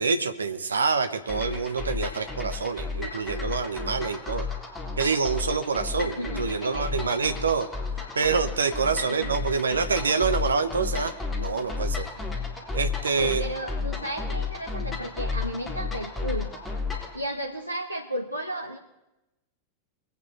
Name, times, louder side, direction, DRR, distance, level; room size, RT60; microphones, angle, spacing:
voice 1, 0.0-4.5 5.0-7.7 8.1-11.1 11.4-12.1 12.7-13.4, right 5 dB, 75° right, 10 dB, 1.0 m, -26 dB
sound 1, 1.3-17.2, left 4 dB, 10° left, 3.7 m, -32 dB
voice 2, 6.0-7.1 8.6-8.8 9.1-9.4 13.1-16.5 17.1-18.8, right 1 dB, 90° left, 2 dB, 1.1 m, -34 dB
23.0 x 9.3 x 4.3 m, 0.93 s
figure-of-eight pair, 90°, 0 cm